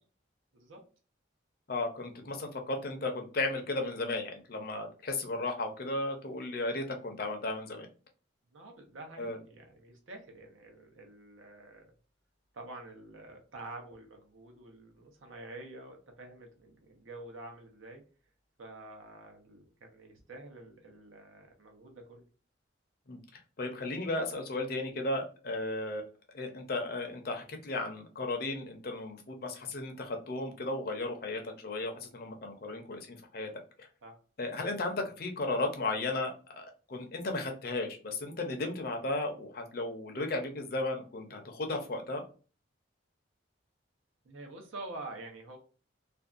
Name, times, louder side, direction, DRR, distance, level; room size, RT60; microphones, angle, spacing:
voice 1, 1.7-7.9 9.2-9.4 23.1-26.0 26.3-33.5 33.8-33.9 34.4-42.2, left 2 dB, 50° left, 4 dB, 0.5 m, -35 dB
voice 2, 8.5-11.9 12.5-18.0 18.6-22.2 32.7-32.9 34.0-34.2 44.2-45.6, right 2 dB, 90° right, 2 dB, 0.8 m, -48 dB
2.5 x 2.2 x 2.4 m, 0.37 s
head